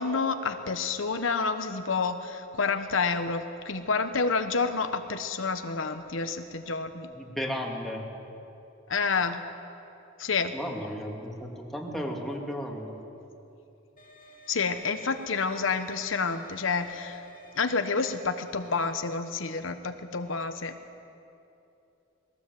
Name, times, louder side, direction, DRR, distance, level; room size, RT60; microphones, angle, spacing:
voice 1, 0.0-7.1 8.9-9.4 10.2-10.6 14.5-17.2 17.5-20.7, left 4 dB, 75° left, 8 dB, 1.1 m, -29 dB
voice 2, 7.1-8.0 10.5-13.0, equal, ahead, -1 dB, 2.3 m, -34 dB
sound 1, 14.0-19.0, left 1 dB, 45° left, 2.5 m, -50 dB
20.5 x 17.5 x 7.8 m, 2.8 s
head